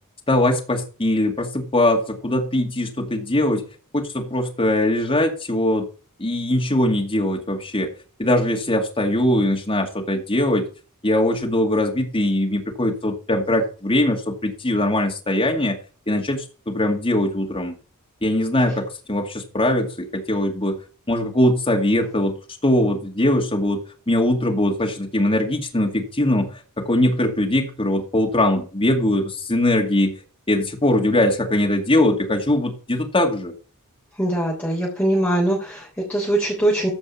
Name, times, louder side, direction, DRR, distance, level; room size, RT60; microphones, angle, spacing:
voice 1, 0.3-3.6 3.9-5.9 6.2-7.9 8.2-10.7 11.0-15.8 16.1-17.7 18.2-20.8 21.1-22.4 22.6-30.1 30.5-33.5, left 1 dB, 25° left, 2 dB, 2.3 m, -21 dB
voice 2, 34.2-36.9, right 1 dB, 10° left, -4 dB, 3.5 m, -22 dB
14.5 x 5.4 x 5.5 m, 0.36 s
head